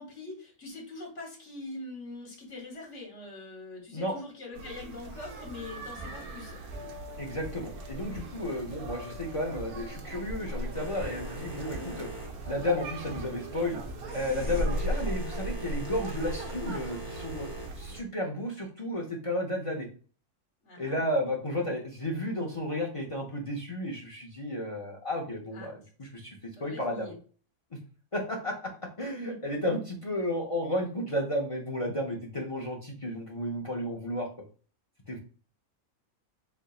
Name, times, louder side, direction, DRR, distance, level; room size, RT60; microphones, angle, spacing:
voice 1, 0.0-6.6 11.7-12.0 20.6-21.0 25.5-25.7 26.6-27.2 29.1-29.4, left 2 dB, 55° left, 0 dB, 1.6 m, -43 dB
sound 1, 4.5-18.0, right 1 dB, 85° right, 1.2 m, -38 dB
sound 2, 5.3-14.8, left 1 dB, 5° left, 1.7 m, -47 dB
voice 2, 7.2-12.1 12.5-13.8 14.1-17.5 17.8-19.9 20.8-27.1 27.7-27.8 28.1-34.3 35.1-35.2, left 1 dB, 40° left, -1 dB, 0.5 m, -33 dB
Boat Water vehicle, 10.7-17.7, right 2 dB, 15° right, 1.2 m, -43 dB
3.9 x 3.4 x 2.4 m, 0.39 s
omnidirectional pair, 1.5 m